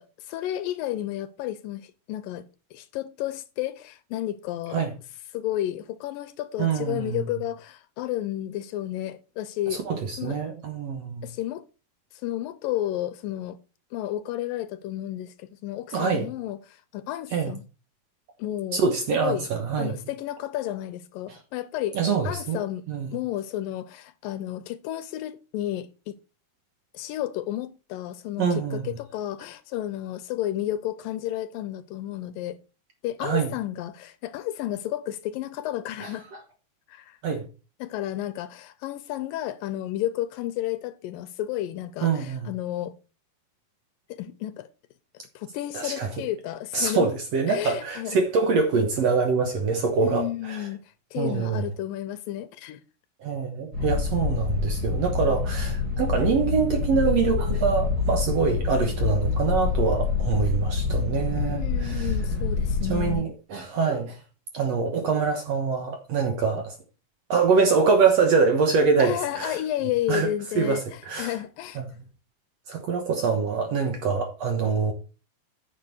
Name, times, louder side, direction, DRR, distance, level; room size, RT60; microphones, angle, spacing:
voice 1, 0.0-2.5 2.7-4.8 5.3-9.8 10.2-10.4 11.2-11.6 12.2-13.6 13.9-17.6 18.4-18.8 19.1-19.5 19.8-22.0 22.2-22.8 23.1-26.2 26.9-32.6 33.0-36.3 36.9-37.2 37.8-43.0 44.1-44.7 45.4-47.1 47.5-48.2 50.0-50.8 51.1-52.8 61.4-63.3 69.0-71.8, left 13 dB, 80° left, 2.2 m, -32 dB
voice 2, 6.6-7.2 9.9-11.3 15.9-16.3 17.3-17.5 18.7-20.0 21.3-21.4 21.9-22.6 22.9-23.1 28.4-28.9 33.2-33.5 36.0-36.4 37.2-37.5 42.0-42.5 45.7-46.1 46.7-50.7 51.2-51.7 53.2-62.1 62.9-64.2 64.5-66.8 67.3-69.6 70.1-70.3 70.6-71.3 71.8-71.9 72.7-74.9, right 5 dB, 60° right, 1.8 m, -25 dB
sound 1, 53.7-63.2, left 4 dB, 30° right, 2.7 m, -26 dB
9.6 x 7.2 x 4.5 m
omnidirectional pair, 4.3 m